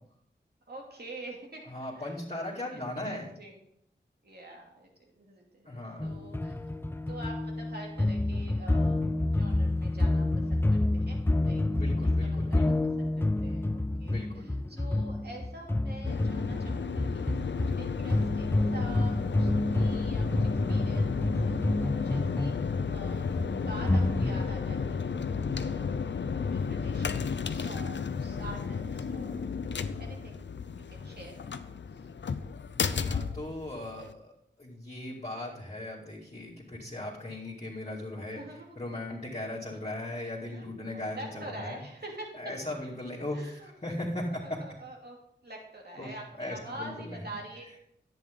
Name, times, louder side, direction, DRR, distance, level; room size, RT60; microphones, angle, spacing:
voice 1, 0.7-1.6 1.9-2.1 2.4-3.7 4.2-4.9 5.2-6.6 7.1-11.6 12.0-17.3 17.8-25.3 25.6-29.4 30.0-30.4 30.9-31.3 31.9-32.0 38.3-38.8 40.5-42.3 43.3-43.7 44.3-45.2 45.4-47.7, right 1 dB, 60° right, -1 dB, 2.8 m, -46 dB
voice 2, 1.7-3.3 5.7-6.1 11.7-12.8 14.0-14.5 32.7-34.3 34.6-38.4 38.8-41.8 42.4-43.5 43.8-44.6 46.0-46.1 46.4-47.2, left 1 dB, 35° left, -7 dB, 2.5 m, -38 dB
sound 1, 6.0-24.4, left 2 dB, 10° left, 0.5 m, -29 dB
sound 2, 16.1-34.1, left 5 dB, 75° left, 0.6 m, -33 dB
10.5 x 8.8 x 3.8 m, 0.73 s
wide cardioid pair, 60°, 19 cm